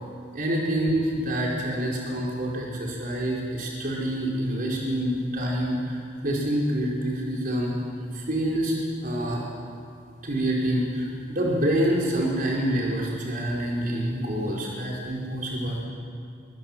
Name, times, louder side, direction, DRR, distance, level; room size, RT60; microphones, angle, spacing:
voice 1, 0.3-6.0 6.2-7.7 8.1-8.7 9.0-9.4 10.2-15.8, right 1 dB, 50° right, -3 dB, 4.9 m, -27 dB
25.5 x 24.0 x 7.6 m, 2.2 s
head